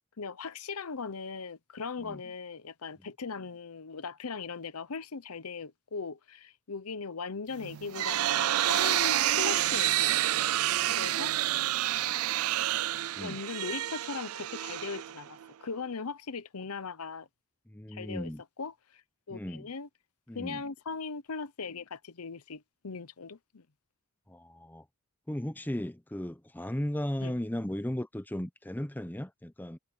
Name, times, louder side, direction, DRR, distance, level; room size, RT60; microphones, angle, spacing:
voice 1, 0.2-10.2 10.9-11.6 12.1-12.3 13.2-17.3 17.9-18.3 18.6-19.0 19.3-19.9 20.3-23.6 27.2-27.3, left 5 dB, 90° left, 0.8 m, -39 dB
sound 1, 7.6-15.5, right 13 dB, 80° right, 0.4 m, -29 dB
voice 2, 17.7-18.4 19.3-19.7 20.3-20.6 24.3-24.8 25.3-29.8, left 1 dB, 10° left, 0.7 m, -36 dB
head